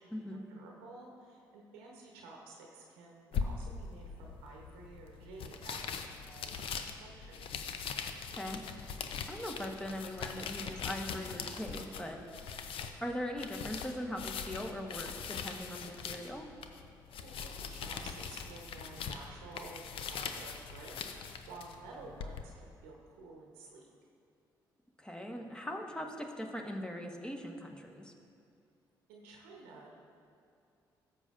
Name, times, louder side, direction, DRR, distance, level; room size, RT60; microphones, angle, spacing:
voice 1, 0.0-7.5 17.2-23.9 29.1-29.9, right 3 dB, 90° right, -1 dB, 0.9 m, -52 dB
sound 1, 3.3-22.4, left 6 dB, 65° left, 0.6 m, -42 dB
voice 2, 9.3-16.5 25.0-28.1, equal, 10° left, 2 dB, 1.2 m, -41 dB
13.0 x 7.2 x 2.5 m, 2.5 s
hypercardioid pair, 50°, 10 cm